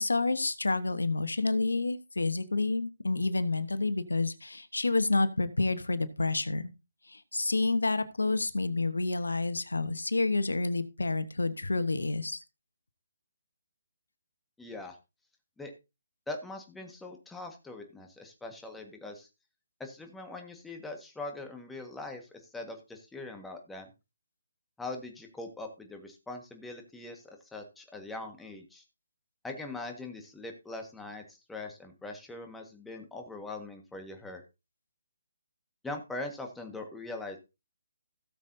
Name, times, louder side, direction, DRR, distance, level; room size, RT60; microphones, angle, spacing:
voice 1, 0.0-6.7 7.1-12.4, left 3 dB, 90° left, 12 dB, 1.1 m, -29 dB
voice 2, 14.6-15.0 15.6-15.7 16.3-19.3 19.8-23.9 24.8-28.8 29.4-34.4 35.8-37.4, left 2 dB, 5° left, 3 dB, 1.6 m, -42 dB
17.0 x 7.1 x 2.7 m, 0.26 s
figure-of-eight pair, 150°, 0 cm